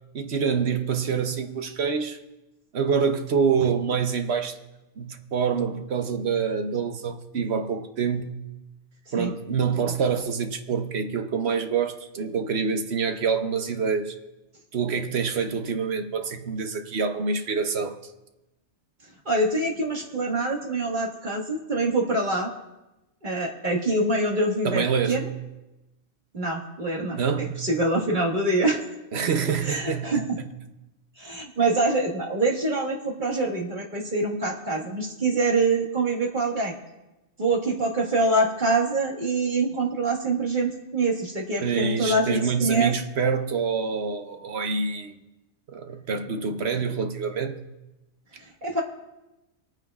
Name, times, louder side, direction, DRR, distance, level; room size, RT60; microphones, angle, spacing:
voice 1, 0.1-2.2 2.7-4.6 5.0-8.4 9.1-14.1 14.7-18.0 24.6-25.4 27.1-27.7 29.1-30.5 41.6-45.2 45.7-47.6, right 6 dB, 60° right, 1.0 m, -26 dB
voice 2, 19.3-22.5 23.2-25.2 26.3-28.8 29.6-30.4 31.2-36.8 37.4-42.9 48.4-48.8, right 2 dB, 40° right, 1.7 m, -25 dB
27.5 x 9.1 x 2.4 m
omnidirectional pair, 1.3 m